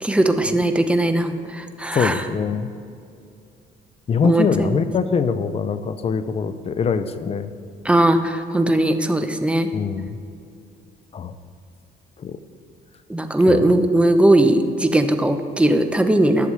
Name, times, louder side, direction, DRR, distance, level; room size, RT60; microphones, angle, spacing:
voice 1, 0.0-2.3 4.2-4.8 7.8-9.7 13.1-16.5, right 1 dB, 5° right, 7 dB, 0.8 m, -19 dB
voice 2, 1.9-2.7 4.1-7.5 9.7-10.2 11.1-11.3 12.2-12.4 13.5-13.7, left 6 dB, 35° left, 12 dB, 0.6 m, -23 dB
11.5 x 7.1 x 6.2 m, 2.5 s
cardioid pair, 110°, 17 cm